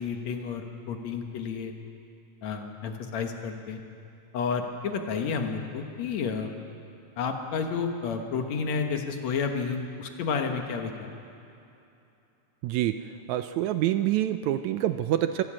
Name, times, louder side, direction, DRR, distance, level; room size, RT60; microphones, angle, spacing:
voice 1, 0.0-1.7 2.4-3.8 4.3-6.5 7.2-11.1, left 5 dB, 65° left, 4 dB, 2.4 m, -31 dB
voice 2, 12.6-15.4, right 13 dB, 80° right, 10 dB, 1.8 m, -27 dB
24.5 x 12.5 x 8.6 m, 2.7 s
omnidirectional pair, 3.6 m